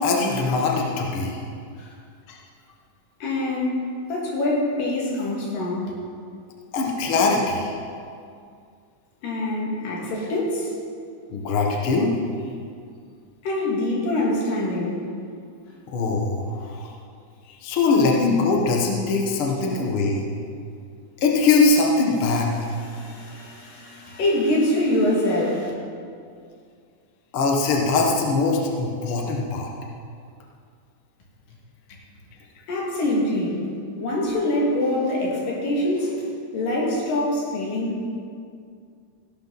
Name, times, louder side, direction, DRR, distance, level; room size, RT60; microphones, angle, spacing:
voice 1, 0.0-1.4 2.3-2.4 6.7-7.7 11.3-12.1 15.9-16.9 17.5-20.2 21.2-22.5 27.3-29.7, left 3 dB, 55° left, 0 dB, 1.7 m, -22 dB
voice 2, 3.2-3.8 4.1-5.9 9.2-10.7 13.4-15.0 22.8-25.7 32.7-33.6 34.0-36.2 36.5-38.0, left 1 dB, 75° left, -3 dB, 3.9 m, -24 dB
15.5 x 11.5 x 4.1 m, 2.3 s
omnidirectional pair, 3.9 m